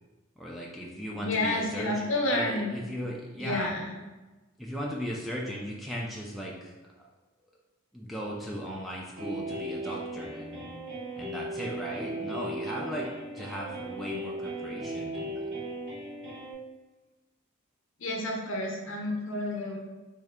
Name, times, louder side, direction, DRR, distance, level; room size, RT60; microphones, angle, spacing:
voice 1, 0.4-2.0 2.3-3.7 4.6-7.1 7.9-10.7 11.2-13.1 13.3-15.5, equal, ahead, -4 dB, 0.3 m, -37 dB
voice 2, 1.2-2.7 3.4-3.9 18.0-19.8, left 1 dB, 60° left, 0 dB, 0.7 m, -30 dB
sound 1, 9.2-16.5, right 1 dB, 50° right, 0.9 m, -37 dB
3.2 x 2.7 x 3.5 m, 1.2 s
head